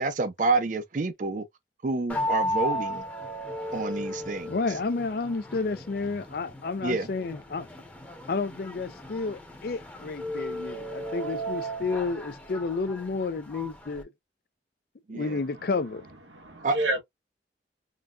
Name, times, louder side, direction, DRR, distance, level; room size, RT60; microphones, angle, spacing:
voice 1, 0.0-1.4 1.8-3.0 3.7-4.5 6.8-7.1 15.1-15.3 16.6-16.8, right 3 dB, 45° right, 0.5 m, -28 dB
sound 1, 2.1-14.0, equal, 10° left, 0.8 m, -35 dB
voice 2, 4.5-7.7 8.3-14.1 15.1-16.1, left 4 dB, 55° left, 0.4 m, -31 dB
voice 3, 16.3-17.0, right 1 dB, 80° right, 1.2 m, -30 dB
3.8 x 2.2 x 2.4 m
head